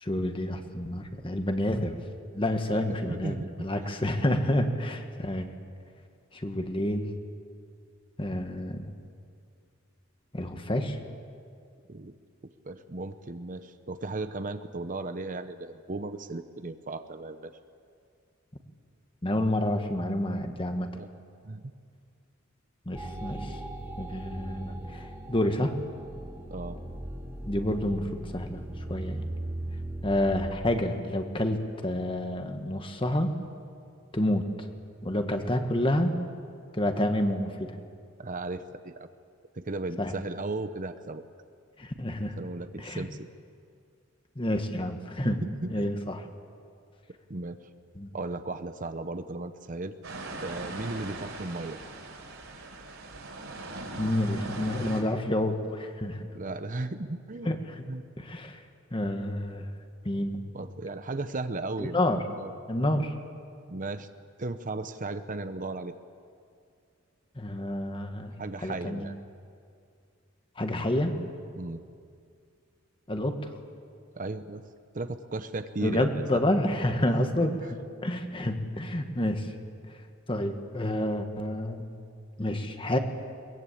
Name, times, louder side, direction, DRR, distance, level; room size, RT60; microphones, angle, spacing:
voice 1, 0.0-2.0 2.3-5.5 6.3-7.1 8.2-8.9 10.3-11.0 19.2-20.9 22.8-23.6 24.0-25.7 27.5-29.2 30.0-33.3 34.1-34.7 35.0-36.2 36.7-37.8 40.0-40.1 41.8-42.4 42.8-43.1 44.3-45.4 45.7-46.2 48.0-48.1 54.0-56.2 57.4-57.8 58.2-58.6 58.9-59.7 60.0-60.4 61.8-62.2 62.7-63.1 67.3-68.3 68.6-69.0 70.6-71.1 73.1-73.5 75.8-77.5 78.0-79.5 80.3-81.9 82.4-83.0, left 1 dB, 25° left, 6 dB, 1.5 m, -29 dB
voice 2, 2.7-3.9 4.6-4.7 11.9-12.1 12.6-17.5 20.9-21.1 21.4-21.6 26.5-26.8 38.2-39.1 39.5-41.2 42.4-43.3 45.2-46.0 47.3-47.6 48.1-49.9 50.4-51.8 56.3-57.5 57.9-58.0 60.5-62.0 62.4-62.5 62.9-63.1 63.7-64.1 64.4-65.9 68.4-69.2 71.5-71.8 74.1-74.6 74.9-76.4 77.1-77.3, right 2 dB, 40° right, 10 dB, 0.8 m, -36 dB
sound 1, 22.9-30.5, right 1 dB, 10° right, 2.0 m, -38 dB
sound 2, 50.0-55.0, right 2 dB, 70° right, 4.3 m, -40 dB
22.0 x 22.0 x 8.6 m, 2.3 s
head